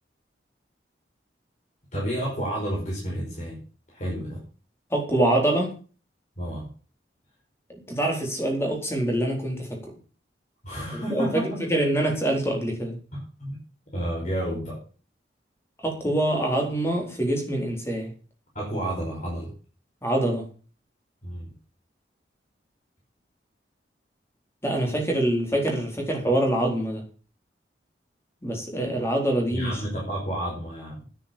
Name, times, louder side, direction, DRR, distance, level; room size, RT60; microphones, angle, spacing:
voice 1, 1.9-3.6 3.9-4.4 6.4-6.7 10.6-11.6 13.1-13.6 13.9-14.8 18.5-19.5 21.2-21.5 29.5-31.0, equal, 40° left, -3 dB, 5.1 m, -30 dB
voice 2, 4.9-5.7 7.9-9.8 10.9-13.0 15.8-18.1 20.0-20.4 24.6-27.0 28.4-29.7, right 1 dB, 15° left, 1 dB, 4.2 m, -25 dB
10.5 x 9.9 x 7.1 m, 0.38 s
head